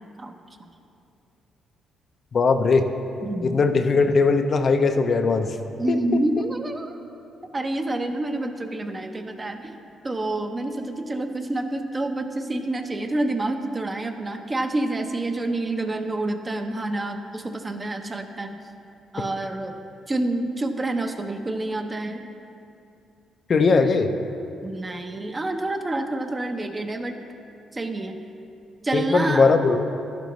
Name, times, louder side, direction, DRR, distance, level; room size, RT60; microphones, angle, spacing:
voice 1, 2.3-2.9 3.4-5.6 5.9-6.2 23.5-24.1 28.9-29.9, left 4 dB, 45° left, 7 dB, 0.6 m, -20 dB
voice 2, 3.2-3.6 5.8-7.0 7.5-9.7 10.0-18.6 19.1-19.8 20.1-22.2 24.6-27.1 27.7-28.2 28.8-29.5, right 2 dB, 25° right, 5 dB, 0.8 m, -28 dB
12.0 x 10.5 x 3.1 m, 2.7 s
cardioid pair, 90°, 0 cm